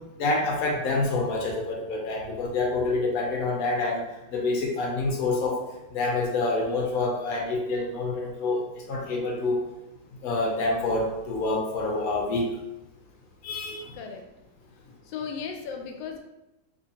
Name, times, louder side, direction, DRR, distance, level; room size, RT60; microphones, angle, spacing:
voice 1, 0.2-4.0 4.3-5.6 5.9-8.6 8.9-9.6 10.2-12.5 13.4-14.0, left 2 dB, 65° left, -1 dB, 1.0 m, -27 dB
voice 2, 15.0-16.2, left 6 dB, 85° left, 3 dB, 1.3 m, -35 dB
3.5 x 3.0 x 2.8 m, 0.94 s
omnidirectional pair, 2.0 m